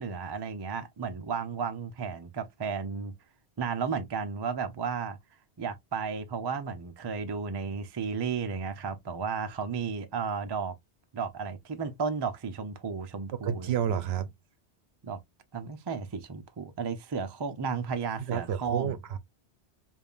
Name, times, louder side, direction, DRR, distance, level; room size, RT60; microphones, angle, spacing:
voice 1, 0.0-3.1 3.6-5.2 5.6-10.7 11.1-13.7 15.0-15.2 15.5-19.0, right 5 dB, 35° right, 0.4 m, -33 dB
voice 2, 13.3-14.3 18.3-19.2, right 9 dB, 70° right, 0.8 m, -30 dB
5.2 x 2.6 x 2.4 m
omnidirectional pair, 1.1 m